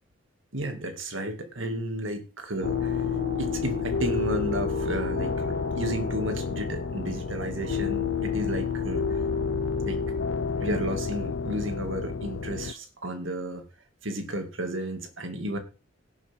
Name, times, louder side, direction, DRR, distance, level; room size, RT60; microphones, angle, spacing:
voice 1, 0.5-3.0 3.4-9.2 9.8-10.0 10.6-13.6 14.0-15.6, right 1 dB, 80° right, 6 dB, 2.3 m, -32 dB
sound 1, 2.6-12.7, left 5 dB, 75° left, 0.5 m, -29 dB
sound 2, 2.6-10.8, equal, 45° right, 1.5 m, -42 dB
18.0 x 7.2 x 3.7 m, 0.33 s
head